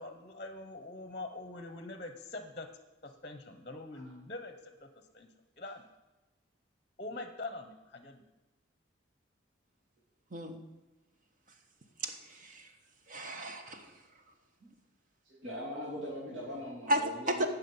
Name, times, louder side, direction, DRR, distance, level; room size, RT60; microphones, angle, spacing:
voice 1, 0.0-2.7 3.0-5.3 5.6-5.8 7.0-8.2, left 2 dB, 30° left, 8 dB, 0.8 m, -44 dB
voice 2, 10.3-10.6 12.0-12.7 13.1-14.0 16.9-17.5, right 1 dB, 40° right, 5 dB, 1.2 m, -34 dB
voice 3, 15.3-17.5, equal, 70° right, -5 dB, 2.8 m, -40 dB
17.0 x 6.0 x 5.5 m, 1.1 s
head